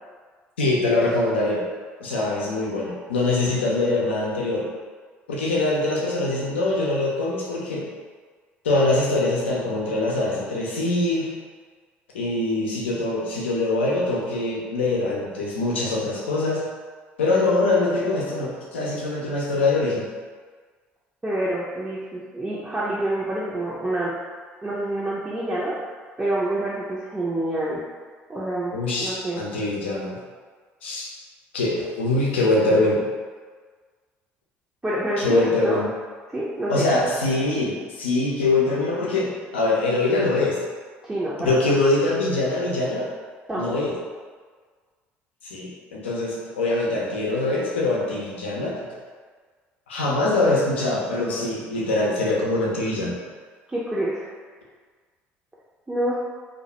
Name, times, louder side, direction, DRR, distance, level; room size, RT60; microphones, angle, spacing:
voice 1, 0.6-1.6 2.0-4.7 5.3-7.9 8.6-11.3 12.1-16.6 17.2-20.1 28.7-30.2 30.8-31.1 31.5-33.0 35.2-35.9 36.7-40.6 41.5-43.1 43.6-43.9 45.4-49.0 49.9-53.2, left 2 dB, 90° left, -4 dB, 0.5 m, -23 dB
voice 2, 21.2-24.1 24.6-25.7 26.2-27.8 28.3-29.4 34.8-35.8 36.3-36.9 41.0-41.7 43.5-43.8 53.7-54.3 55.9-56.1, right 1 dB, 15° right, -8 dB, 0.5 m, -27 dB
2.3 x 2.1 x 2.8 m, 1.5 s
hypercardioid pair, 65°, 6 cm